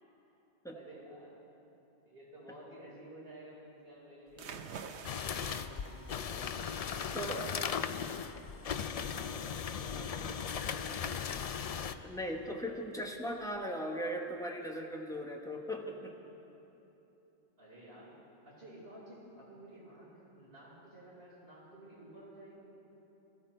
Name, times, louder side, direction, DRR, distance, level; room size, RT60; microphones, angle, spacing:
voice 1, 0.7-1.4 2.0-5.6 5.8-8.2 8.6-12.1 13.7-14.2 17.6-18.1 18.4-22.7, right 1 dB, 60° right, -7 dB, 4.7 m, -53 dB
sound 1, 4.3-13.6, right 6 dB, 75° right, 1.0 m, -52 dB
sound 2, 5.0-11.9, left 7 dB, 60° left, 0.3 m, -37 dB
voice 2, 7.1-7.6 9.9-10.1 12.0-16.2, equal, 5° left, 1 dB, 1.0 m, -38 dB
19.0 x 14.0 x 4.4 m, 3.0 s
omnidirectional pair, 1.1 m